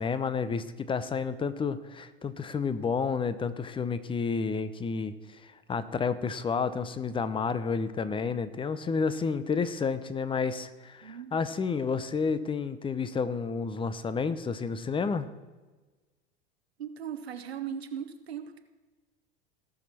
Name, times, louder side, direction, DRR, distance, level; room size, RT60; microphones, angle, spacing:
voice 1, 0.0-15.3, left 5 dB, 15° left, 13 dB, 0.8 m, -30 dB
voice 2, 11.0-11.4 16.8-18.6, right 8 dB, 85° right, 8 dB, 1.0 m, -38 dB
18.0 x 6.4 x 4.4 m, 1.3 s
hypercardioid pair, 85°, 31 cm